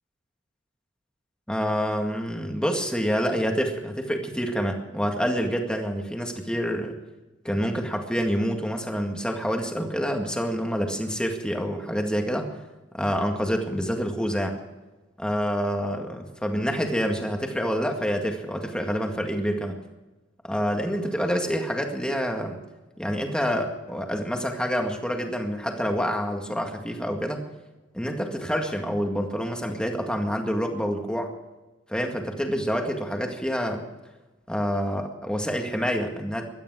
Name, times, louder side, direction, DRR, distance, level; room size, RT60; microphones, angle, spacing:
voice 1, 1.5-6.9 7.4-12.6 12.9-14.5 15.2-19.8 20.4-22.6 23.0-27.4 27.9-31.3 31.9-33.9 34.5-36.4, equal, 5° left, 3 dB, 2.0 m, -27 dB
17.0 x 12.5 x 6.3 m, 1.1 s
head